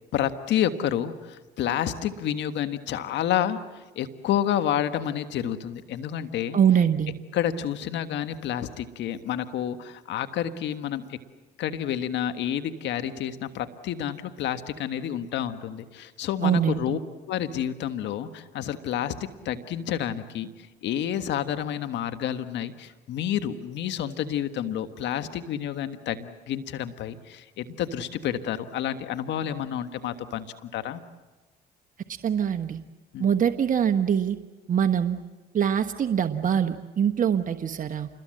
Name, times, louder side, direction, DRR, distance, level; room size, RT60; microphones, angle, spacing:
voice 1, 0.1-6.6 7.3-11.2 11.6-17.0 17.3-20.5 20.8-31.0 33.1-33.2, left 10 dB, 75° left, 10 dB, 1.5 m, -29 dB
voice 2, 6.5-7.1 16.4-17.0 32.2-32.8 33.2-34.4 34.7-35.2 35.5-38.1, right 8 dB, 45° right, 6 dB, 1.3 m, -23 dB
28.0 x 21.5 x 7.7 m, 1.2 s
supercardioid pair, 65°, 19 cm